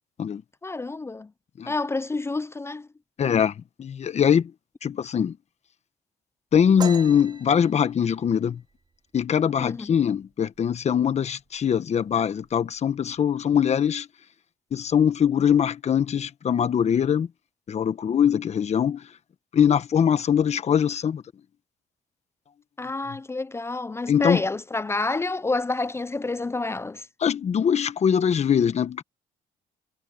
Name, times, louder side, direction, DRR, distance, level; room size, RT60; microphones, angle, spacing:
voice 1, 0.6-1.3 1.7-2.9 9.6-9.9 22.8-27.1, left 3 dB, 15° left, 0.5 m, -28 dB
voice 2, 3.2-3.5 3.8-4.5 4.8-5.4 6.5-8.6 9.1-14.1 14.7-17.3 17.7-19.0 19.5-21.2 24.1-24.4 27.2-29.0, left 8 dB, 40° left, 1.3 m, -22 dB
sound 1, 6.8-10.2 10.6-10.9 11.3-11.8 12.0-12.8, right 5 dB, 25° right, 2.2 m, -40 dB
cardioid pair, 110°, 17 cm